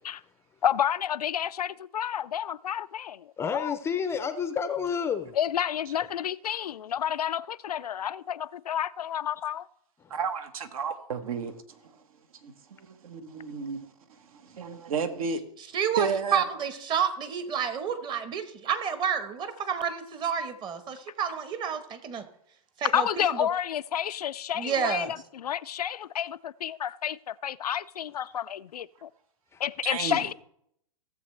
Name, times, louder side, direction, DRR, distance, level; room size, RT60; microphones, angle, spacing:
voice 1, 0.6-3.8 5.3-9.7 22.9-29.1 29.6-30.3, left 10 dB, 90° left, 0.4 m, -30 dB
voice 2, 3.4-5.3 29.5-29.6, left 6 dB, 15° left, 0.5 m, -29 dB
voice 3, 10.1-11.8 12.4-12.5 12.9-13.8 14.3-15.4 16.0-16.5 29.8-30.2, right 5 dB, 65° right, 1.4 m, -32 dB
voice 4, 15.7-22.2 22.8-23.5 24.6-25.1, right 7 dB, 25° right, 1.1 m, -30 dB
16.5 x 7.3 x 3.2 m
hypercardioid pair, 130°, 19 cm